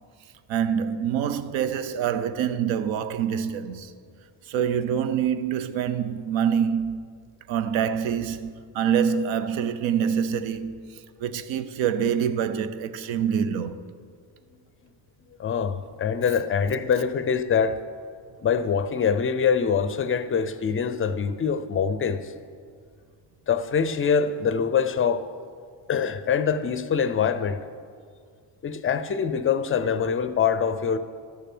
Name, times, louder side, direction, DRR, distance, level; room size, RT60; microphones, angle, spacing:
voice 1, 0.5-3.9 4.5-7.0 7.5-10.8 11.2-13.8, right 8 dB, 75° right, 0.8 m, -25 dB
voice 2, 15.4-17.8 18.4-22.3 23.5-25.3 25.9-27.6 28.6-31.0, left 6 dB, 30° left, 0.4 m, -24 dB
12.5 x 6.8 x 6.0 m
cardioid pair, 125°, 46 cm